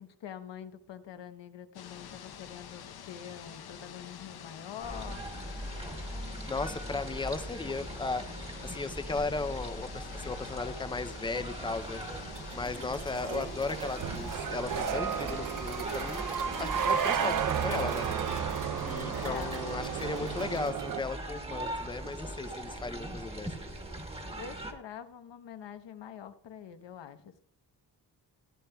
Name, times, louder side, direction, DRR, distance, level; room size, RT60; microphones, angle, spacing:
voice 1, 0.0-5.2 19.2-19.6 24.3-27.4, left 9 dB, 85° left, 9 dB, 0.9 m, -45 dB
sound 1, 1.7-20.7, left 8 dB, 60° left, 0.7 m, -47 dB
sound 2, 4.8-24.7, right 1 dB, 15° right, 1.2 m, -40 dB
voice 2, 6.5-8.2 8.6-12.0 12.5-16.2 16.6-18.1 18.8-23.7, left 3 dB, 10° left, 12 dB, 0.4 m, -36 dB
sound 3, 11.7-21.0, right 8 dB, 50° right, 0.5 m, -33 dB
15.5 x 11.5 x 2.2 m, 0.69 s
wide cardioid pair, 175°, 42 cm